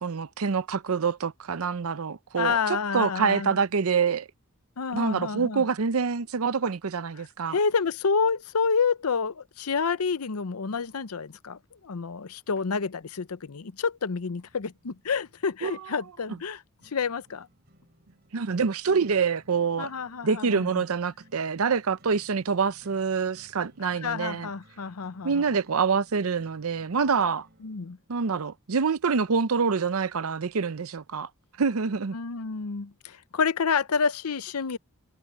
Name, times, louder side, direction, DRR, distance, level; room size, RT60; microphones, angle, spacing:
voice 1, 0.0-4.3 4.9-7.6 15.6-15.7 18.3-19.9 20.2-24.5 25.2-27.5 28.1-31.3 31.6-32.1, right 5 dB, 75° right, 0.6 m, -26 dB
voice 2, 2.4-3.6 4.8-5.7 7.5-11.6 11.8-16.6 16.9-17.5 19.8-20.8 23.8-25.4 27.6-28.0 32.1-34.8, left 5 dB, 90° left, 0.7 m, -29 dB
sound 1, 14.4-28.4, equal, 50° right, 7.3 m, -59 dB
head